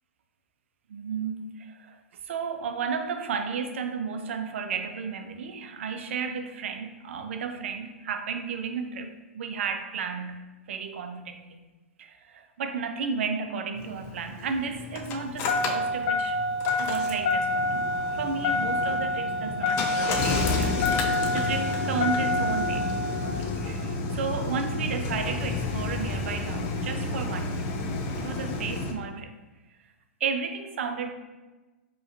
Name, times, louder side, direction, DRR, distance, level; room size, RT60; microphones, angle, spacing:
voice 1, 0.9-2.0 2.2-10.4 10.7-11.6 12.0-16.4 16.8-20.9 21.3-22.9 23.2-27.6 28.2-29.3 30.2-31.1, right 5 dB, 65° right, 7 dB, 0.4 m, -33 dB
Engine starting, 13.8-28.9, left 2 dB, 35° left, 0.5 m, -28 dB
4.8 x 3.0 x 2.6 m, 1.2 s
hypercardioid pair, 115°, 7 cm